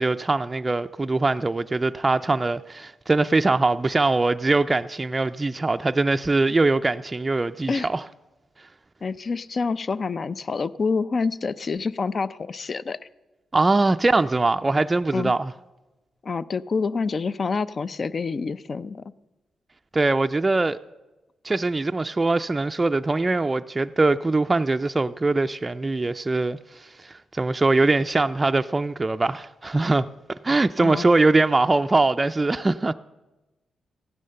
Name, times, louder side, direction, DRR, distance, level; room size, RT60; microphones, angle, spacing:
voice 1, 0.0-8.0 13.5-15.5 19.9-20.8 21.4-32.9, right 3 dB, 25° right, 0.4 m, -22 dB
voice 2, 9.0-13.0 15.1-15.3 16.2-19.0 30.8-31.1, left 4 dB, 45° left, 0.5 m, -27 dB
15.0 x 9.8 x 6.8 m
cardioid pair, 70°, 0 cm